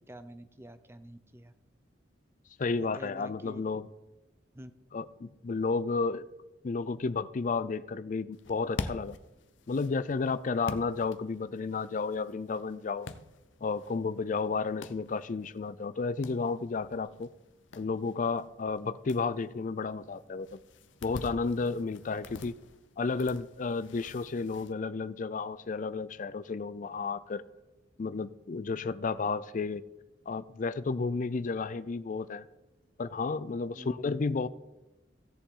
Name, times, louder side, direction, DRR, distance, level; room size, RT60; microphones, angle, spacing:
voice 1, 0.1-1.5 2.9-3.6 4.5-4.7 33.8-34.0, equal, 15° right, 11 dB, 0.6 m, -48 dB
voice 2, 2.6-3.9 4.9-6.2 6.6-9.2 9.7-13.1 13.6-17.3 17.8-20.6 21.0-22.5 23.0-27.4 28.0-29.8 30.3-32.5 33.0-34.5, left 4 dB, 45° left, 15 dB, 0.4 m, -32 dB
sound 1, 8.3-24.7, left 3 dB, 85° left, 0.7 m, -47 dB
16.0 x 7.1 x 3.8 m, 1.0 s
head